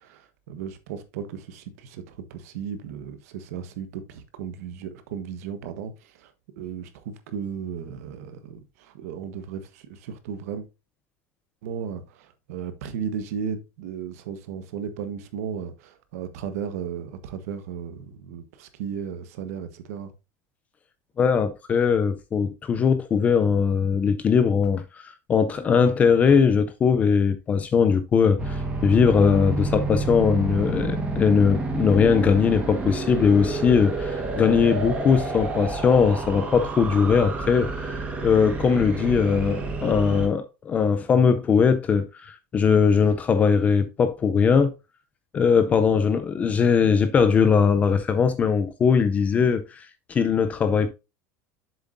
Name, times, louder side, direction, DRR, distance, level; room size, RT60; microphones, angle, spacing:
voice 1, 0.0-10.6 11.6-20.1, right 7 dB, 70° right, 1.3 m, -35 dB
voice 2, 21.2-44.7 45.3-50.9, left 6 dB, 15° left, 0.5 m, -20 dB
sound 1, 28.4-40.3, right 3 dB, 15° right, 1.4 m, -29 dB
7.6 x 7.1 x 2.6 m
supercardioid pair, 175°, 8 cm